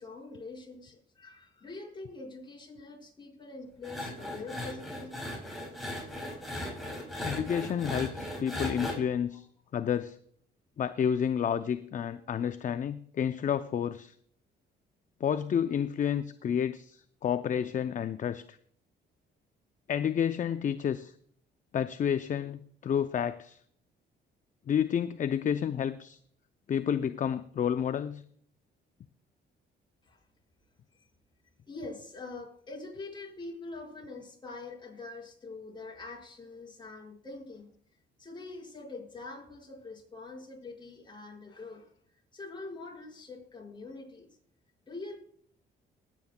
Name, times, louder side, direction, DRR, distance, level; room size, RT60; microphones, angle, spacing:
voice 1, 0.0-5.3 7.6-7.8 9.3-9.4 30.0-30.2 31.0-31.1 31.7-37.7 38.2-41.9 42.3-44.4 44.9-45.2, left 3 dB, 25° left, -1 dB, 5.2 m, -44 dB
sound 1, 3.8-9.0, left 1 dB, ahead, 4.9 m, -37 dB
voice 2, 7.2-9.5 9.7-10.2 10.8-14.1 15.2-18.6 19.9-21.1 21.7-23.6 24.7-26.2 26.7-28.2, left 8 dB, 40° left, 11 dB, 0.5 m, -30 dB
20.0 x 9.0 x 2.2 m, 0.62 s
cardioid pair, 90°, 20 cm